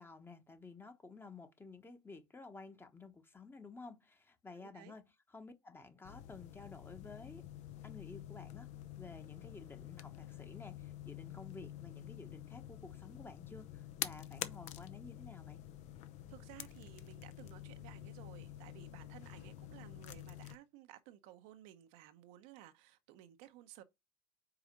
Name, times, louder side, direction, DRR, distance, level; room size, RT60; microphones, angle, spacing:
voice 1, 0.0-7.5 7.8-8.7 9.0-15.6, left 3 dB, 15° left, 1.1 m, -53 dB
voice 2, 4.5-4.9 16.3-23.8, right 13 dB, 75° right, 0.8 m, -56 dB
sound 1, 6.0-20.6, left 12 dB, 60° left, 0.7 m, -48 dB
4.9 x 4.0 x 5.2 m
supercardioid pair, 100°, 13 cm